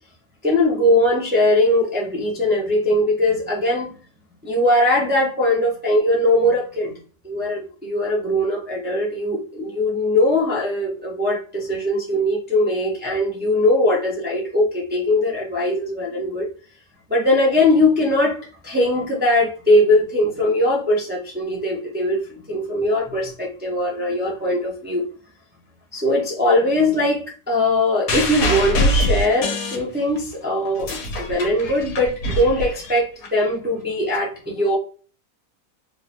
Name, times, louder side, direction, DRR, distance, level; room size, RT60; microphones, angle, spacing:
voice 1, 0.4-3.9 4.4-6.9 7.2-16.5 17.1-25.1 25.9-34.8, left 1 dB, 15° right, -4 dB, 0.3 m, -20 dB
sound 1, 28.1-30.3 30.7-33.3 34.1-34.2, left 1 dB, 70° left, 1.3 m, -24 dB
3.6 x 2.0 x 2.9 m, 0.38 s
omnidirectional pair, 1.6 m